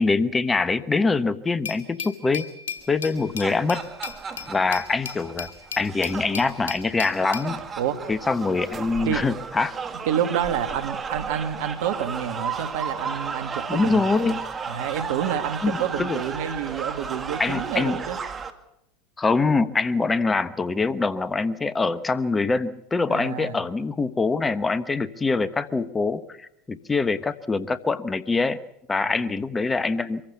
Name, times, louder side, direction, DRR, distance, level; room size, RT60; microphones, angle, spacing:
voice 1, 0.0-2.5 2.9-3.8 4.5-5.5 5.8-7.6 8.1-9.7 13.7-14.4 15.6-16.2 17.4-18.0 19.2-28.6 28.9-30.2, left 3 dB, 20° left, 14 dB, 1.1 m, -24 dB
Glass, 1.6-7.5, left 6 dB, 80° left, 2.8 m, -36 dB
sound 1, 3.0-18.5, right 5 dB, 25° right, 2.1 m, -34 dB
voice 2, 7.8-8.1 9.1-9.2 10.1-14.4 14.7-18.2 23.1-23.6 29.1-29.2, right 9 dB, 65° right, 9 dB, 1.8 m, -28 dB
25.0 x 15.0 x 8.2 m, 0.82 s
hypercardioid pair, 85°, 0 cm